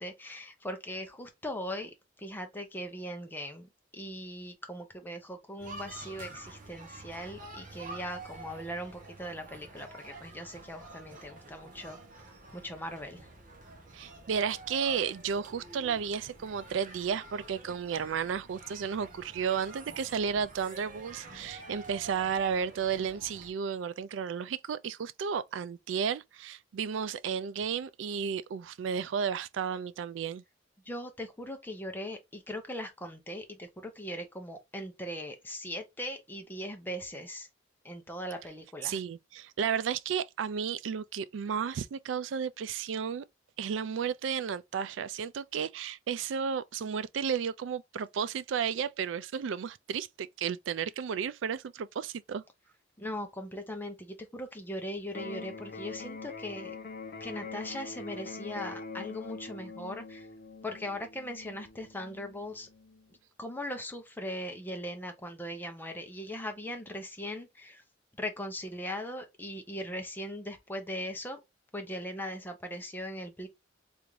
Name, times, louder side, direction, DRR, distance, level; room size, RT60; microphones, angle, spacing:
voice 1, 0.0-12.0 12.5-13.3 30.9-37.5 37.8-39.0 53.0-56.7 57.2-60.3 60.6-62.7 63.4-67.8 68.2-71.4 71.7-73.5, equal, 10° left, 0.7 m, -39 dB
sound 1, 5.6-23.5, right 2 dB, 45° right, 0.9 m, -48 dB
voice 2, 13.9-30.4 38.8-43.2 43.6-52.4, right 7 dB, 80° right, 0.3 m, -33 dB
Electric guitar, 55.1-63.1, left 4 dB, 50° left, 0.8 m, -44 dB
3.5 x 2.5 x 3.1 m
head